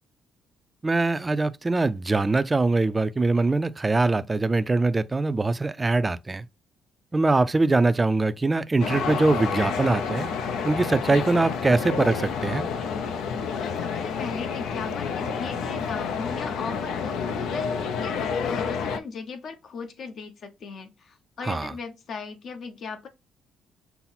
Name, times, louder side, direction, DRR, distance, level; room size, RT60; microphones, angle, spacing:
voice 1, 0.8-6.4 7.1-10.3 10.6-12.7 21.5-21.7, right 3 dB, 20° right, 0.3 m, -23 dB
sound 1, 8.8-19.0, left 6 dB, 85° left, 0.5 m, -29 dB
voice 2, 13.6-23.1, left 5 dB, 60° left, 0.9 m, -38 dB
5.6 x 2.0 x 4.0 m
cardioid pair, 90°, 0 cm